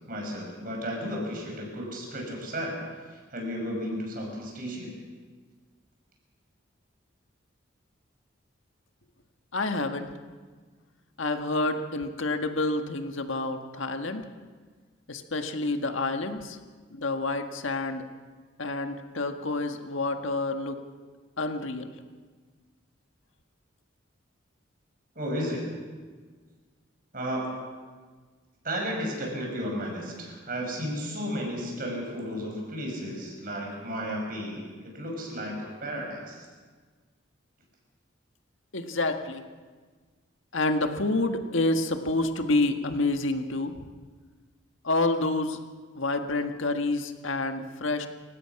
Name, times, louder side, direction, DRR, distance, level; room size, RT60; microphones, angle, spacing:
voice 1, 0.1-2.8 3.1-4.9 25.1-25.8 27.1-27.4 28.6-34.6 34.9-36.5, equal, 45° right, 0 dB, 6.2 m, -33 dB
voice 2, 9.5-10.1 11.2-14.2 15.1-16.6 16.9-18.1 18.6-20.8 21.4-21.9 38.7-39.4 40.5-43.7 44.8-45.6 45.9-48.1, left 2 dB, 75° left, 6 dB, 1.6 m, -28 dB
28.0 x 16.5 x 5.9 m, 1.5 s
head